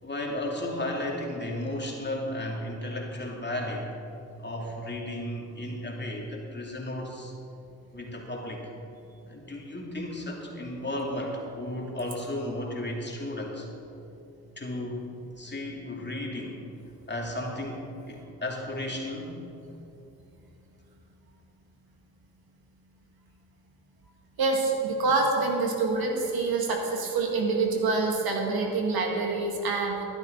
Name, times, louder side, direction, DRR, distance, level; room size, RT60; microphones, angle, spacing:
voice 1, 0.0-3.9 4.4-7.3 7.9-8.7 9.3-13.7 14.6-15.1 15.4-16.6 17.1-19.4, left 1 dB, 25° left, -1 dB, 2.6 m, -34 dB
voice 2, 24.4-30.0, right 3 dB, 60° right, 1 dB, 1.9 m, -26 dB
12.5 x 11.5 x 4.0 m, 2.9 s
hypercardioid pair, 40°, 42 cm